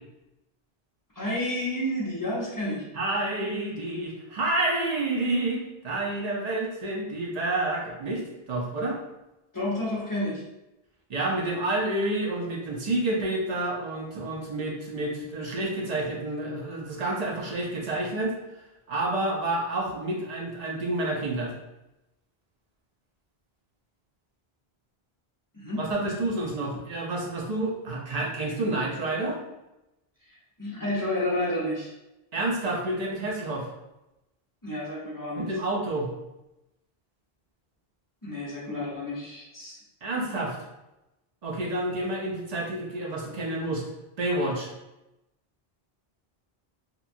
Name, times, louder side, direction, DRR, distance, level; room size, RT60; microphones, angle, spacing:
voice 1, 1.2-2.8 9.5-10.4 25.5-25.8 30.6-31.9 34.6-35.4 38.2-39.8, left 1 dB, 20° left, -7 dB, 0.7 m, -30 dB
voice 2, 2.9-8.2 8.5-9.0 11.1-18.3 18.9-21.5 25.8-29.4 32.3-33.7 35.4-36.1 40.0-40.6 41.4-43.8 44.2-44.7, right 2 dB, 50° right, -2 dB, 0.6 m, -29 dB
2.9 x 2.3 x 2.5 m, 0.94 s
omnidirectional pair, 1.0 m